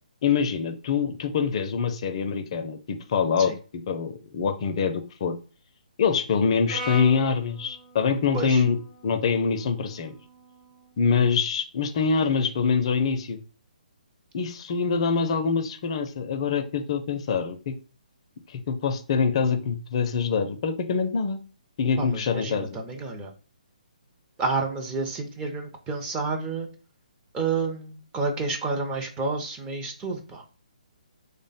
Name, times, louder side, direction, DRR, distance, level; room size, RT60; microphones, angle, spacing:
voice 1, 0.2-5.3 6.0-8.8 9.0-10.1 11.0-13.4 14.3-17.7 18.5-21.4 21.8-22.8, left 5 dB, 45° left, 7 dB, 0.4 m, -25 dB
Brass instrument, 6.7-10.9, equal, 85° right, 1.3 m, -41 dB
voice 2, 22.0-23.3 24.4-26.7 27.3-30.4, right 3 dB, 15° right, 2 dB, 0.5 m, -30 dB
3.3 x 2.1 x 4.0 m, 0.36 s
hypercardioid pair, 145°, 4 cm